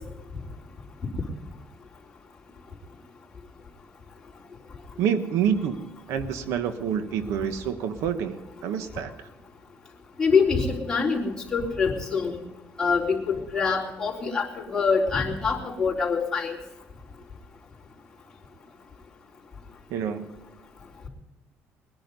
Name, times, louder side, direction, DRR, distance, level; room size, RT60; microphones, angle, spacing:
voice 1, 5.0-9.3 19.9-20.3, right 8 dB, 80° right, 10 dB, 1.1 m, -28 dB
voice 2, 10.2-12.4 12.8-16.6, left 5 dB, 15° left, -5 dB, 3.8 m, -25 dB
21.0 x 10.5 x 5.3 m, 1.1 s
cardioid pair, 135°, 5 cm